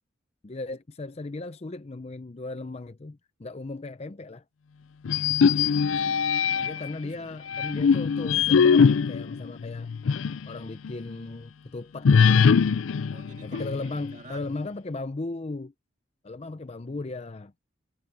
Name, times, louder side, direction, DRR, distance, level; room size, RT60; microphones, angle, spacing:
voice 1, 0.4-4.4 6.6-9.9 10.5-12.5 13.4-15.7 16.2-17.5, left 2 dB, 30° left, 0.5 m, -36 dB
sound 1, 5.0-6.9 7.5-10.5 10.8-10.9 12.0-14.1, left 6 dB, 85° left, 0.4 m, -21 dB
voice 2, 5.4-7.4 13.1-14.6, right 3 dB, 40° right, 2.1 m, -51 dB
head